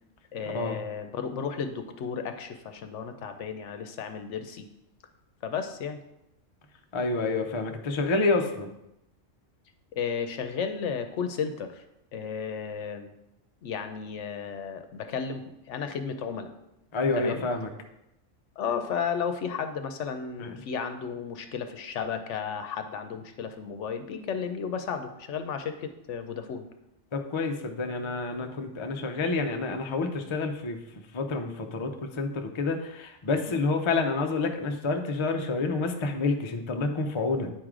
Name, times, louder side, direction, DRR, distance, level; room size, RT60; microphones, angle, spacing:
voice 1, 0.3-4.7 5.4-6.0 9.9-11.9 12.1-13.1 13.6-16.5 17.2-17.4 18.6-26.6 28.9-29.0 33.5-33.6, left 6 dB, 70° left, 7 dB, 1.0 m, -33 dB
voice 2, 6.9-8.7 16.9-17.7 20.4-20.6 27.1-30.8 31.1-37.5, left 3 dB, 35° left, 4 dB, 0.5 m, -28 dB
9.1 x 4.8 x 3.7 m, 0.87 s
omnidirectional pair, 1.3 m